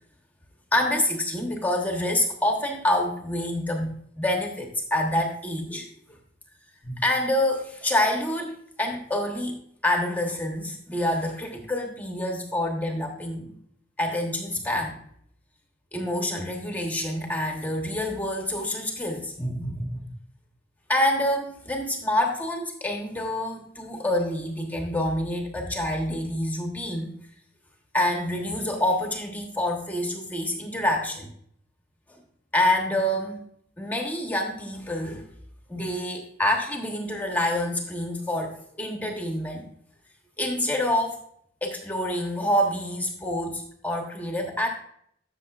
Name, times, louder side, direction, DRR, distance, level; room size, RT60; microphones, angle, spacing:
voice 1, 0.7-5.9 6.8-9.6 9.8-13.5 14.0-15.0 15.9-20.1 20.9-27.1 27.9-31.3 32.1-32.2 32.5-33.4 33.8-35.3 35.7-39.6 40.4-41.2 41.6-44.7, left 1 dB, 10° left, 2 dB, 1.1 m, -27 dB
12.5 x 6.7 x 2.4 m, 0.67 s
head